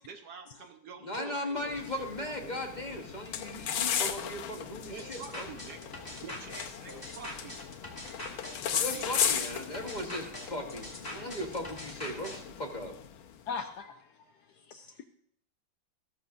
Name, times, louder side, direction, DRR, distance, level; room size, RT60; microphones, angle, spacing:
voice 1, 0.0-2.7 4.1-4.2 4.9-7.6 8.7-9.0, right 6 dB, 65° right, 1.2 m, -47 dB
voice 2, 1.0-5.5 8.6-13.0, left 1 dB, 30° left, 1.0 m, -38 dB
sound 1, 1.6-13.4, left 8 dB, 90° left, 1.6 m, -36 dB
sound 2, 5.0-12.4, left 1 dB, 10° left, 1.9 m, -43 dB
voice 3, 8.1-8.7 11.2-11.3 13.5-15.0, left 5 dB, 70° left, 1.0 m, -42 dB
14.0 x 13.5 x 2.5 m
omnidirectional pair, 2.2 m